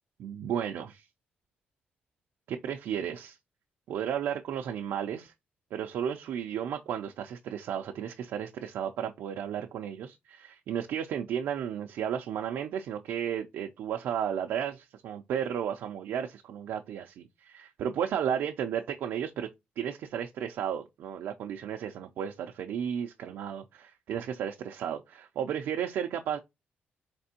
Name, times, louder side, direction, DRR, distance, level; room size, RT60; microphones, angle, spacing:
voice 1, 0.2-1.1 2.5-3.4 3.9-5.3 5.7-19.5 19.8-26.4, right 9 dB, 80° right, 0.4 m, -33 dB
4.3 x 3.3 x 2.7 m
cardioid pair, 140°, 4 cm